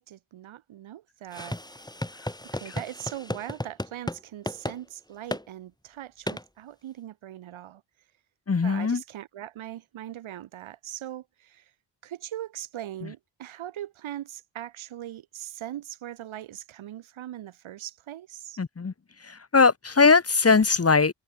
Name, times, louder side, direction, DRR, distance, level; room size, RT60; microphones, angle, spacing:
voice 1, 0.0-1.8 2.5-7.8 8.6-11.7 12.0-18.6, right 12 dB, 70° right, 2.6 m, -40 dB
sound 1, 1.3-4.2 4.5-4.8 5.3-5.4 6.3-6.4, left 1 dB, 10° left, 3.0 m, -34 dB
voice 2, 8.5-9.0 18.6-18.9 19.2-21.1, left 4 dB, 30° left, 1.7 m, -20 dB
hypercardioid pair, 45°, 49 cm